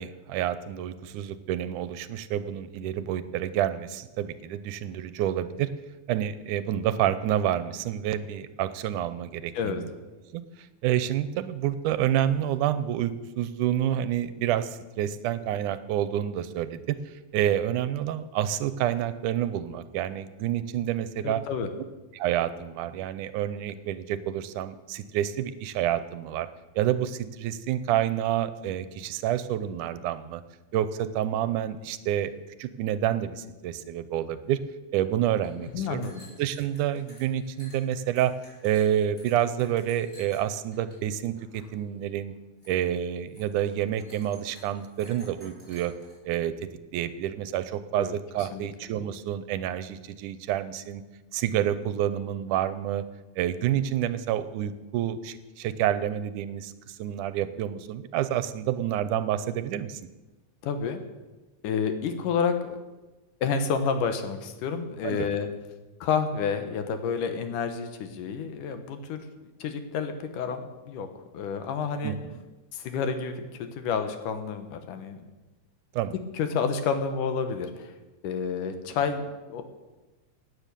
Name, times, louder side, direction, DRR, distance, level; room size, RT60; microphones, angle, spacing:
voice 1, 0.0-5.7 6.1-9.9 10.3-10.4 10.8-17.0 17.3-21.4 22.1-26.5 26.8-30.4 30.7-32.3 32.6-34.6 34.9-36.0 36.4-38.3 38.6-42.3 42.7-45.9 46.3-46.5 46.9-51.0 51.3-53.0 53.4-60.0 65.0-65.3 72.0-72.3 76.0-76.1, right 11 dB, 90° right, 13 dB, 2.2 m, -28 dB
voice 2, 21.2-21.7 35.7-36.2 48.0-48.1 48.5-48.7 60.6-61.0 61.6-62.8 63.4-65.5 66.0-71.1 71.3-72.2 72.7-75.2 76.3-77.9 78.2-79.6, left 6 dB, 85° left, 8 dB, 2.8 m, -29 dB
sound 1, 34.9-35.0 35.3-41.0 41.3-41.7 42.0-42.3 42.6-42.9 43.3-46.1, equal, 20° left, 5.7 m, -54 dB
16.5 x 9.8 x 6.9 m, 1.1 s
omnidirectional pair, 3.6 m